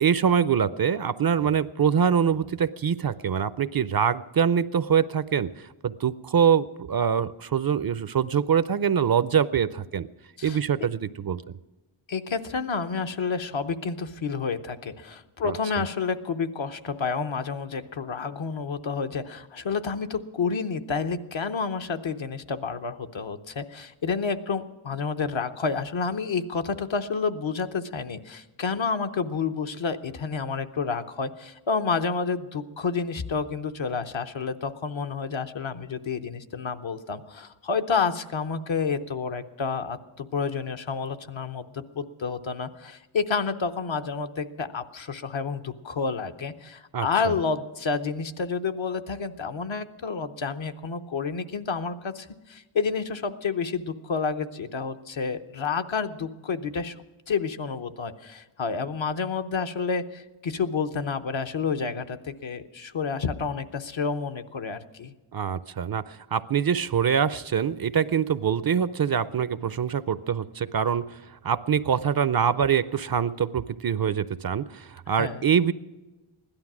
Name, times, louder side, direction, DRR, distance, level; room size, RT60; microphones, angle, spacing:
voice 1, 0.0-10.1 10.4-11.4 15.4-15.6 46.9-47.3 65.3-71.2 71.4-75.7, right 7 dB, 50° right, 16 dB, 0.5 m, -24 dB
voice 2, 12.1-57.0 57.3-65.1 75.2-75.5, left 5 dB, 65° left, 7 dB, 0.8 m, -29 dB
16.0 x 12.0 x 6.1 m, 1.1 s
wide cardioid pair, 55°, 49 cm